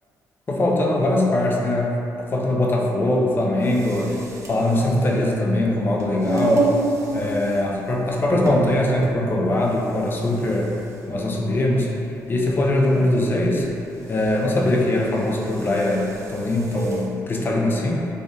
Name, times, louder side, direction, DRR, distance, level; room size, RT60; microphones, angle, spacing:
voice 1, 0.5-4.2 4.5-6.7 7.1-10.7 11.1-11.9 12.3-13.7 14.1-18.1, left 1 dB, 30° left, -1 dB, 0.4 m, -21 dB
sound 1, 3.6-17.1, right 2 dB, 50° right, 0.4 m, -31 dB
3.4 x 2.1 x 2.6 m, 2.7 s
cardioid pair, 90°, 7 cm